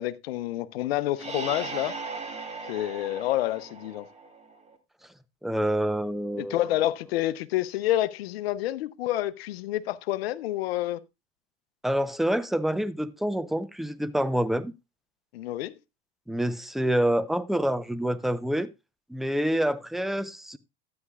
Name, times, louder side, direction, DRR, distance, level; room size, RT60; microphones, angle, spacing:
voice 1, 0.0-1.9 2.7-4.1 6.4-11.0 15.3-15.7, left 14 dB, 70° left, 0.8 m, -28 dB
sound 1, 1.2-4.8, right 4 dB, 20° right, 2.2 m, -38 dB
voice 2, 5.4-6.6 11.8-14.7 16.3-18.7 19.1-20.6, right 1 dB, ahead, 0.6 m, -27 dB
12.5 x 9.6 x 2.4 m
hypercardioid pair, 95°, 31 cm